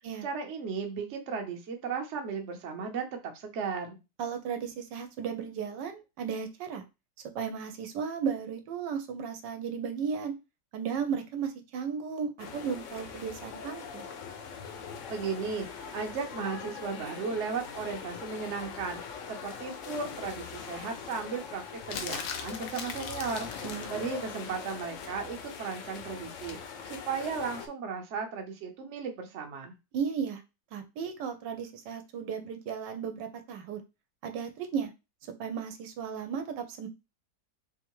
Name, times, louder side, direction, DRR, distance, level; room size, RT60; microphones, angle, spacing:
voice 1, 0.2-4.0 15.1-19.0 19.3-23.5 23.9-26.6 26.8-29.7, right 5 dB, 50° right, 3 dB, 0.9 m, -35 dB
voice 2, 4.2-6.8 7.3-10.3 10.7-14.1 23.6-23.9 29.9-30.4 30.7-33.8 34.2-34.9 35.4-36.9, right 6 dB, 75° right, 7 dB, 1.3 m, -35 dB
sound 1, 12.4-27.7, left 6 dB, 60° left, 0.8 m, -42 dB
sound 2, 21.9-24.0 26.5-26.7, left 6 dB, 80° left, 1.4 m, -39 dB
3.6 x 3.4 x 3.0 m, 0.26 s
omnidirectional pair, 2.0 m